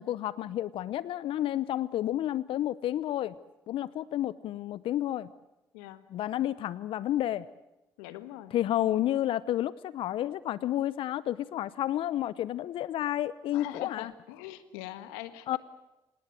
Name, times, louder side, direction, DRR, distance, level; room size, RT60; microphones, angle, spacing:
voice 1, 0.0-3.3 3.7-5.3 6.1-7.5 8.5-14.1 15.5-15.6, left 12 dB, 65° left, 19 dB, 0.8 m, -30 dB
voice 2, 5.7-6.1 8.0-8.5 13.5-15.6, left 14 dB, 85° left, 13 dB, 1.6 m, -42 dB
27.0 x 19.0 x 8.1 m, 0.97 s
hypercardioid pair, 50°, 10 cm